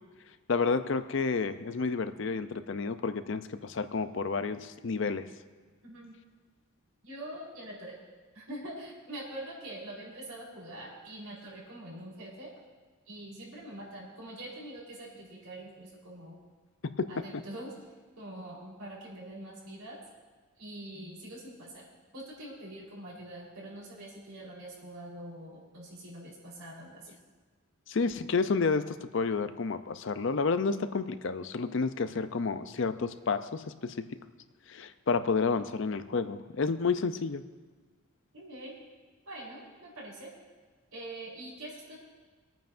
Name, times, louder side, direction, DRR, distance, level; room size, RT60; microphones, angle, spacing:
voice 1, 0.5-5.3 17.0-17.1 27.9-33.9 34.7-37.4, left 4 dB, 55° left, 11 dB, 0.5 m, -30 dB
voice 2, 5.8-6.1 7.0-8.0 8.3-12.5 13.1-16.4 17.1-17.7 18.2-20.0 20.6-27.1 38.3-38.7 39.3-40.3 40.9-41.9, right 1 dB, 80° right, -4 dB, 4.0 m, -44 dB
24.5 x 9.1 x 2.6 m, 1.4 s
head